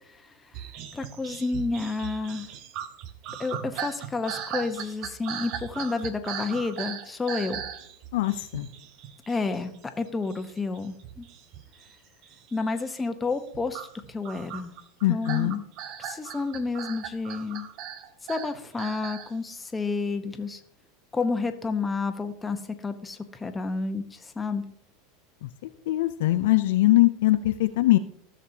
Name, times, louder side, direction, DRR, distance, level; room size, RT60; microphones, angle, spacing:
sound 1, 0.5-10.0 10.3-12.0 12.2-12.7 13.3-19.3, right 9 dB, 55° right, 0.9 m, -38 dB
voice 1, 0.9-2.5 3.4-7.6 9.3-9.7 10.0-11.3 12.5-14.7 15.1-15.6 16.0-17.7 18.3-20.6 21.1-24.6, left 3 dB, 15° left, 7 dB, 1.1 m, -30 dB
voice 2, 8.1-8.7 15.0-15.6 25.9-28.0, left 16 dB, 70° left, 10 dB, 0.5 m, -22 dB
15.5 x 6.6 x 2.9 m, 0.69 s
hypercardioid pair, 90°, 0 cm